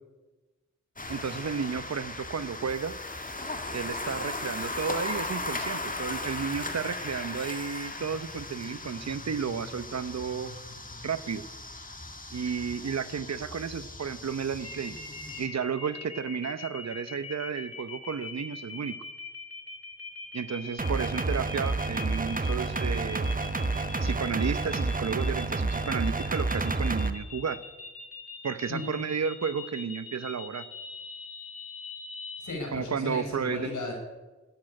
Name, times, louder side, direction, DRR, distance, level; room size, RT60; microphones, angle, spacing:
sound 1, 1.0-15.5, left 2 dB, 30° left, 1.9 m, -37 dB
voice 1, 1.1-2.9 3.7-10.5 11.0-11.4 12.3-15.0 15.4-19.0 20.3-23.3 24.0-27.6 28.4-30.7 32.7-33.7, right 6 dB, 65° right, 14 dB, 0.9 m, -32 dB
sound 2, 14.6-32.5, left 4 dB, 50° left, 3.2 m, -42 dB
sound 3, 20.8-27.1, right 3 dB, 30° right, 1.2 m, -29 dB
voice 2, 32.4-33.9, left 2 dB, 85° left, 1 dB, 5.5 m, -35 dB
14.5 x 8.8 x 9.9 m, 1.2 s
wide cardioid pair, 65°, 29 cm